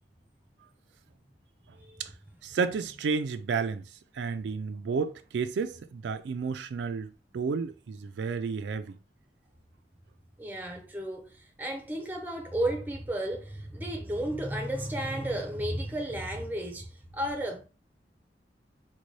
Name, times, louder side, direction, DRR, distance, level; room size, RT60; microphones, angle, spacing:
voice 1, 2.4-9.0, right 5 dB, 80° right, 0.3 m, -32 dB
voice 2, 10.4-17.6, right 1 dB, 10° right, 0.5 m, -33 dB
3.9 x 2.2 x 3.1 m
head